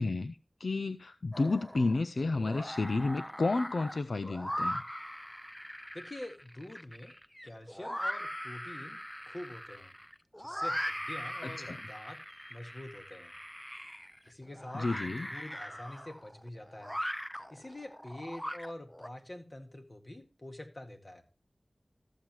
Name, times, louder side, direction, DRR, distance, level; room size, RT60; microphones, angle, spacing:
voice 1, 0.0-4.8 11.4-11.8 14.7-15.3, left 3 dB, 80° left, 0.4 m, -31 dB
sound 1, 1.3-2.0 2.4-19.1, equal, 10° left, 0.5 m, -40 dB
voice 2, 5.9-7.1 7.4-9.0 9.3-9.9 10.4-12.2 12.5-13.3 14.2-16.9 17.5-21.2, left 1 dB, 45° left, 1.9 m, -46 dB
14.5 x 7.3 x 3.1 m
wide cardioid pair, 45°, 0 cm